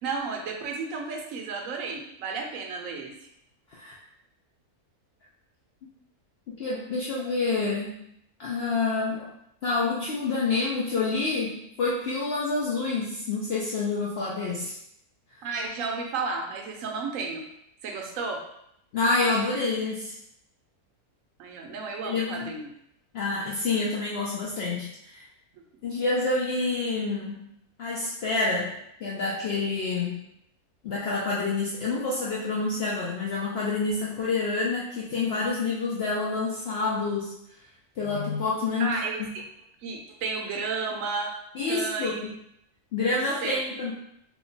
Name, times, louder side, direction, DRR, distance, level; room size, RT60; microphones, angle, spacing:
voice 1, 0.0-3.1 15.4-17.4 17.8-18.4 21.4-22.7 25.5-25.6 38.8-39.4 39.8-41.3 41.7-42.2 43.4-43.6, right 4 dB, 70° right, 2 dB, 0.9 m, -32 dB
voice 2, 6.6-8.0 8.4-9.3 9.6-14.8 18.9-20.2 22.0-22.5 23.1-25.3 25.8-27.5 27.8-30.2 30.8-37.3 38.0-39.3 41.5-42.3 42.9-43.9, left 3 dB, 70° left, -5 dB, 0.6 m, -28 dB
2.8 x 2.2 x 3.8 m, 0.75 s
omnidirectional pair, 1.6 m